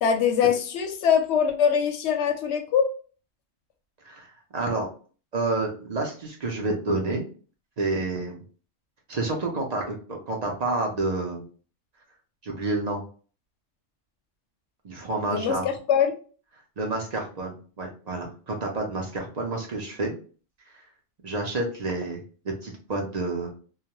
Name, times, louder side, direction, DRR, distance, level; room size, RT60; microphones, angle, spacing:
voice 1, 0.0-2.9 15.2-16.1, left 7 dB, 65° left, 6 dB, 0.8 m, -23 dB
voice 2, 4.5-4.9 5.3-7.2 7.8-8.4 9.1-11.4 12.4-13.0 14.8-15.6 16.8-20.1 21.2-22.2 22.6-23.5, right 2 dB, 45° right, 0 dB, 0.5 m, -29 dB
2.3 x 2.1 x 2.9 m, 0.39 s
omnidirectional pair, 1.3 m